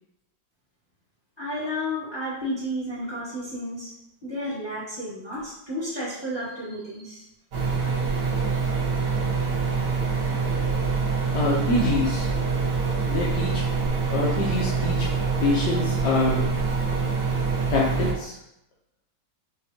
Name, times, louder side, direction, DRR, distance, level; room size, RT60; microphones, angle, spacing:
voice 1, 1.4-3.9 4.2-7.2, equal, 15° left, -9 dB, 1.1 m, -32 dB
sound 1, 7.5-18.1, right 5 dB, 80° right, 1.6 m, -25 dB
voice 2, 11.3-12.3 13.1-13.6 14.1-15.1 15.4-16.5 17.7-18.3, left 3 dB, 75° left, -4 dB, 1.2 m, -25 dB
5.5 x 2.2 x 2.8 m, 0.82 s
omnidirectional pair, 2.0 m